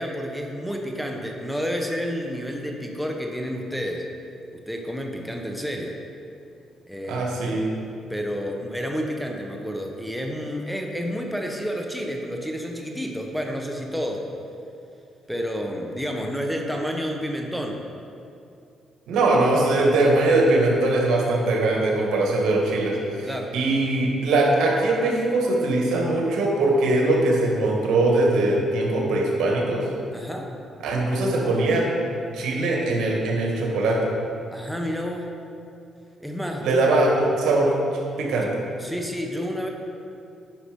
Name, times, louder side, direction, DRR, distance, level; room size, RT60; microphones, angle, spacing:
voice 1, 0.0-4.1 4.5-6.0 6.9-7.6 8.1-14.3 15.3-17.9 23.2-23.5 30.1-30.5 34.5-35.4 36.2-36.8 38.8-39.7, equal, ahead, 1 dB, 1.0 m, -30 dB
voice 2, 7.1-7.6 19.1-29.8 30.8-31.8 32.3-34.0 36.6-37.7 38.2-38.6, right 2 dB, 80° right, -2 dB, 2.0 m, -21 dB
10.0 x 5.8 x 5.3 m, 2.6 s
cardioid pair, 90°, 0 cm